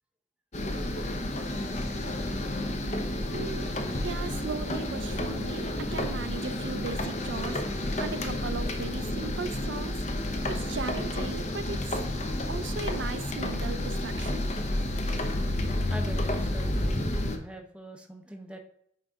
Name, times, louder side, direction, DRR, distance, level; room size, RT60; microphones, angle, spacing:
sound 1, 0.5-17.4, left 1 dB, 35° left, 0.7 m, -30 dB
voice 1, 3.3-3.7 4.0-10.1 10.5-12.0 12.5-14.5, right 4 dB, 70° right, 10 dB, 0.5 m, -37 dB
voice 2, 15.9-18.6, right 1 dB, 5° right, 3 dB, 0.6 m, -42 dB
9.1 x 3.8 x 3.5 m, 0.69 s
head